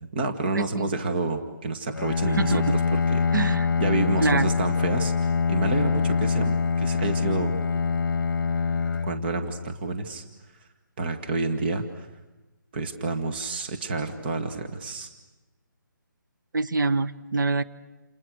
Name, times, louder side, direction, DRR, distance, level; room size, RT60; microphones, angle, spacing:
voice 1, 0.0-3.3 3.8-7.5 9.0-10.2 11.0-12.1 12.7-15.1, right 3 dB, 30° right, 5 dB, 1.7 m, -29 dB
voice 2, 0.5-0.9 2.4-2.6 3.3-3.7 4.2-4.5 16.5-17.6, right 3 dB, 70° right, 11 dB, 1.4 m, -25 dB
Bowed string instrument, 1.9-9.9, left 5 dB, 70° left, 0.9 m, -25 dB
29.5 x 29.0 x 6.5 m, 1.1 s
hypercardioid pair, 170°, 11 cm